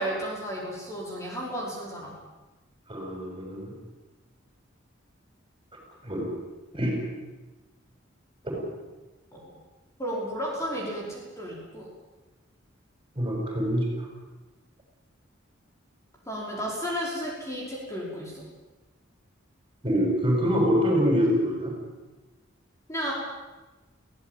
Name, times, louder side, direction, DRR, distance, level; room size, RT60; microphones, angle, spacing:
voice 1, 0.0-2.1 9.3-9.5 10.0-11.9 16.3-18.5 22.9-23.1, equal, 15° left, -4 dB, 5.3 m, -33 dB
voice 2, 2.9-3.7 6.0-6.3 6.7-7.0 8.5-8.6 13.2-13.9 19.8-21.7, equal, 25° right, 0 dB, 7.5 m, -25 dB
22.5 x 17.0 x 9.1 m, 1.2 s
head